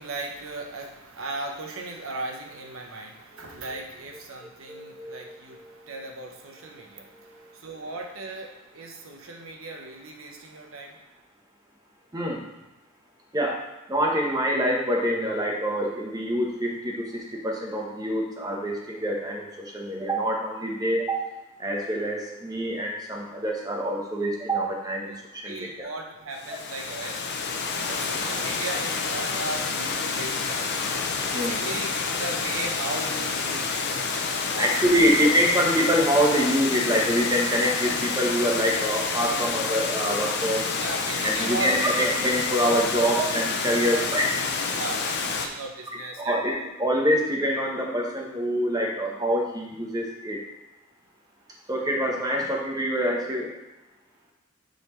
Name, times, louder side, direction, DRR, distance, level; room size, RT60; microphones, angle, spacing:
voice 1, 0.0-11.1 25.0-25.2 25.4-27.2 27.9-30.7 31.2-33.8 34.5-35.1 37.6-37.8 40.8-41.7 41.9-42.1 43.7-44.1 44.7-46.6, right 2 dB, 75° right, 2 dB, 1.0 m, -37 dB
voice 2, 4.7-5.2 12.1-12.4 13.3-13.6 13.9-21.2 21.6-25.1 25.4-25.9 31.3-31.6 34.6-40.8 41.2-44.3 46.2-50.4 51.7-53.5, equal, 20° right, 0 dB, 1.1 m, -25 dB
Water, 26.3-45.5, left 4 dB, 55° left, 0.7 m, -28 dB
9.8 x 4.1 x 3.2 m, 1.0 s
head